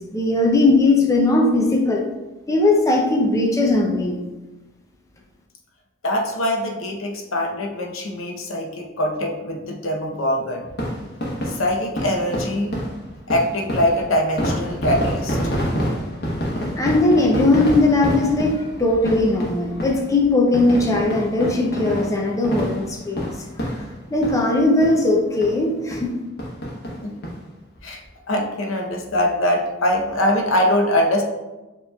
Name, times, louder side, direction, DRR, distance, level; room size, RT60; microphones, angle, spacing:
voice 1, 0.0-2.0 2.5-4.2 16.8-23.3 24.1-26.1, left 2 dB, 15° left, 0 dB, 0.4 m, -19 dB
voice 2, 6.0-10.7 11.5-12.7 13.3-15.4 27.0-27.1 27.8-28.0 28.3-31.2, left 1 dB, 85° left, 1 dB, 0.8 m, -22 dB
sound 1, 10.7-24.6 24.8-25.0 25.4-25.5 25.9-26.1 26.4-27.3 27.8-27.9 28.0-28.1, equal, 55° left, 1.0 m, -27 dB
6.9 x 3.0 x 2.3 m, 1.1 s
head